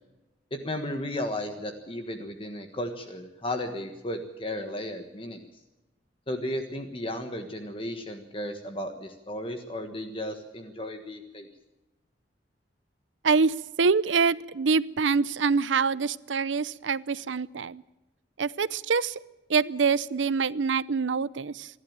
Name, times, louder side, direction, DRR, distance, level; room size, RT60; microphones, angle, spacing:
voice 1, 0.5-5.4 6.3-11.5, left 1 dB, 30° left, 6 dB, 1.4 m, -34 dB
voice 2, 13.2-17.8 18.4-19.2 19.5-21.7, right 5 dB, 90° right, 18 dB, 0.7 m, -25 dB
27.0 x 11.5 x 8.9 m, 1.0 s
head